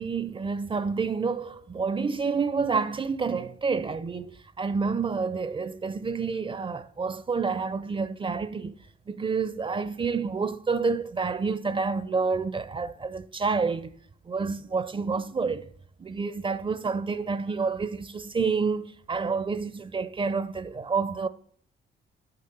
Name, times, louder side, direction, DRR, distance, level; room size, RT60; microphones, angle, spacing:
voice 1, 0.0-8.8 9.1-13.9 14.3-15.7 16.0-21.3, right 4 dB, 25° right, 0.4 m, -29 dB
6.6 x 5.7 x 6.8 m
cardioid pair, 90°, 20 cm